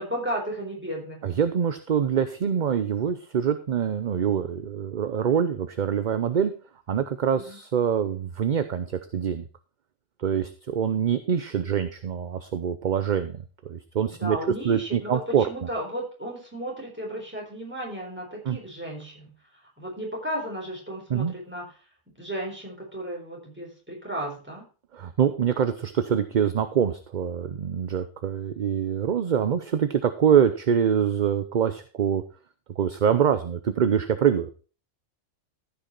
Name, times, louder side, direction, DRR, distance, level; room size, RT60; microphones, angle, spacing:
voice 1, 0.0-1.3 7.4-7.6 14.1-19.3 19.8-21.7 22.2-24.7, equal, 10° right, -2 dB, 4.0 m, -34 dB
voice 2, 1.2-6.5 6.9-9.5 10.2-13.4 13.7-14.4 14.6-15.5 18.5-18.6 21.1-21.3 24.9-32.2 32.8-34.5, right 8 dB, 45° right, 11 dB, 0.7 m, -25 dB
14.0 x 5.8 x 4.4 m, 0.37 s
omnidirectional pair, 1.3 m